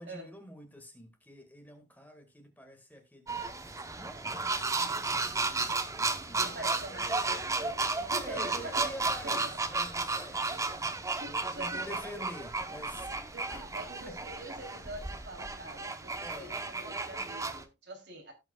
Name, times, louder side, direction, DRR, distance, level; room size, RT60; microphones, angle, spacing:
voice 1, 0.0-6.7 8.2-13.7 14.1-14.2 16.2-16.6, equal, 10° left, 1.8 m, -48 dB
sound 1, 3.3-17.6, right 3 dB, 15° right, 0.8 m, -33 dB
voice 2, 6.4-9.0 9.2-9.5 10.5-10.6 11.2-12.3 13.3-18.3, right 1 dB, 65° right, 3.1 m, -45 dB
17.0 x 5.8 x 2.3 m
head